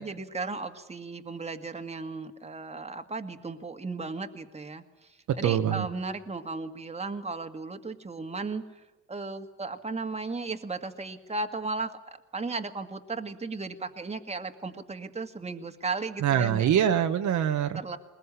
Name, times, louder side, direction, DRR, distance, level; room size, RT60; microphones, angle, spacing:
voice 1, 0.0-8.6 9.1-16.7 17.7-18.0, right 3 dB, 20° right, 6 dB, 1.9 m, -35 dB
voice 2, 5.4-5.9 16.2-17.8, right 9 dB, 75° right, 6 dB, 1.4 m, -24 dB
21.0 x 21.0 x 9.8 m, 1.1 s
cardioid pair, 90°, 30 cm